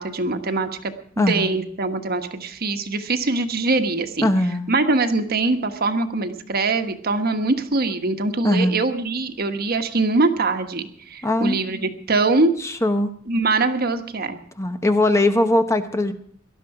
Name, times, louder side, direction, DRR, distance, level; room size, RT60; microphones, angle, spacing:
voice 1, 0.0-4.3 4.7-12.5 13.3-14.4, right 3 dB, 50° right, 7 dB, 1.2 m, -23 dB
voice 2, 1.2-1.5 4.2-4.7 8.4-8.8 11.2-11.6 12.6-13.1 14.6-16.1, left 1 dB, 15° left, 8 dB, 0.8 m, -20 dB
18.5 x 12.0 x 4.8 m, 0.62 s
head